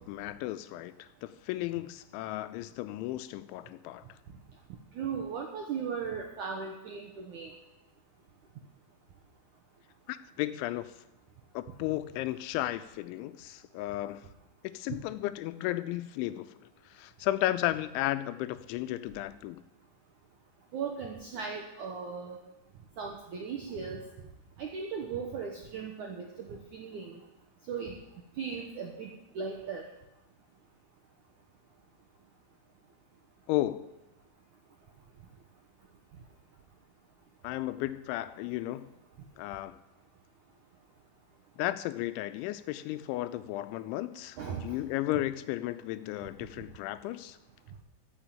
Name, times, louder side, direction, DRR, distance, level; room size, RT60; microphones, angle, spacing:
voice 1, 0.0-4.1 10.1-10.9 11.5-14.2 14.6-16.5 16.9-19.6 33.5-33.8 37.4-38.9 39.4-39.8 41.6-47.4, left 15 dB, 90° left, 12 dB, 3.1 m, -34 dB
voice 2, 5.0-7.5 20.7-22.4 23.0-24.0 24.6-27.2 27.7-28.0 28.4-29.1 29.4-29.8 44.4-44.7, right 6 dB, 75° right, 1 dB, 1.8 m, -37 dB
14.5 x 7.4 x 8.9 m, 0.92 s
omnidirectional pair, 5.3 m